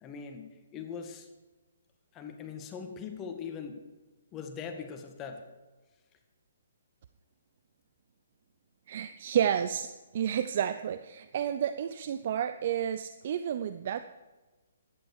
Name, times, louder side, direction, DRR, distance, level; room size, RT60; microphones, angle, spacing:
voice 1, 0.0-1.3 2.1-3.8 4.3-5.4, left 6 dB, 20° left, 5 dB, 1.9 m, -41 dB
voice 2, 8.9-14.0, right 9 dB, 50° right, 12 dB, 0.6 m, -31 dB
15.0 x 11.5 x 4.9 m, 1.2 s
figure-of-eight pair, 135°, 0 cm